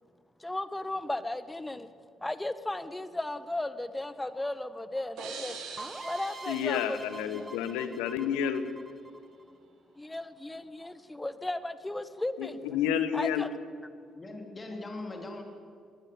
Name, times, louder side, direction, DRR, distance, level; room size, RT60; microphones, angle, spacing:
voice 1, 0.4-1.9 2.2-5.6 6.0-7.0 7.3-7.5 9.9-12.6 13.1-13.5, left 1 dB, 15° left, 13 dB, 1.5 m, -35 dB
sound 1, 5.2-7.9, right 5 dB, 70° right, 3.5 m, -44 dB
sound 2, 5.8-9.5, right 2 dB, 20° right, 1.6 m, -45 dB
voice 2, 6.5-8.6 12.4-13.4, left 9 dB, 75° left, 11 dB, 1.3 m, -30 dB
voice 3, 14.1-15.4, left 2 dB, 30° left, 3 dB, 3.4 m, -40 dB
21.5 x 18.5 x 7.2 m, 2.3 s
hypercardioid pair, 45°, 0 cm